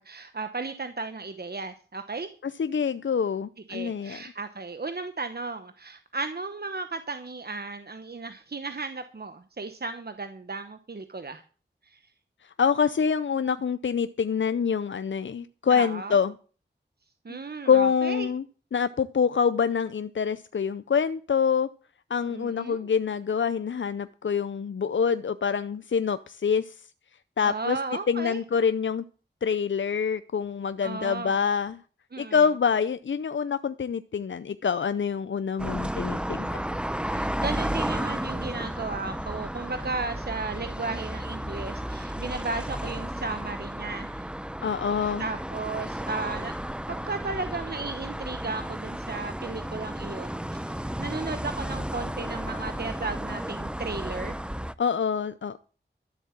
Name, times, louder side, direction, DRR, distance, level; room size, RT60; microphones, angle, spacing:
voice 1, 0.0-2.3 3.7-11.4 11.9-12.0 15.7-16.2 17.2-18.3 22.3-22.9 27.4-28.4 30.8-31.4 32.1-32.4 37.0-44.3 45.2-46.5 46.9-50.4 50.7-54.3, right 3 dB, 55° right, 1.0 m, -35 dB
voice 2, 2.4-4.2 12.4-16.4 17.3-17.4 17.7-18.4 18.7-21.7 22.1-26.8 27.4-27.8 28.1-29.0 29.4-31.8 32.2-36.6 44.6-45.3 54.8-55.6, left 6 dB, 80° left, 0.5 m, -26 dB
sound 1, 35.6-54.7, equal, 5° right, 0.7 m, -33 dB
13.0 x 7.5 x 7.3 m
wide cardioid pair, 45°, 19 cm